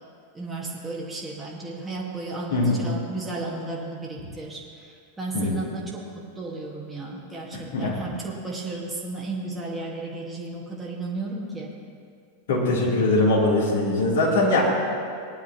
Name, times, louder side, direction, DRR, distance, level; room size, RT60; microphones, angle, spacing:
voice 1, 0.3-11.7, right 2 dB, 10° right, -3 dB, 1.7 m, -34 dB
voice 2, 12.5-14.6, left 2 dB, 60° left, -5 dB, 3.2 m, -21 dB
18.5 x 10.5 x 3.0 m, 2.3 s
figure-of-eight pair, 90°, 0 cm